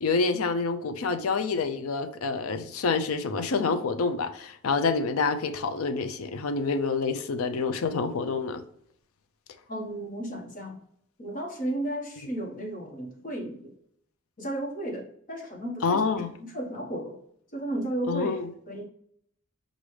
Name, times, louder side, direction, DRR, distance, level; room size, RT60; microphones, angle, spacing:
voice 1, 0.0-8.6 15.8-16.3 18.0-18.5, left 4 dB, 80° left, 0.5 m, -27 dB
voice 2, 9.7-10.8 11.2-13.7 14.4-16.0 16.4-17.2 17.5-18.3 18.7-18.9, right 1 dB, 40° left, 1.3 m, -33 dB
6.1 x 2.6 x 3.3 m
head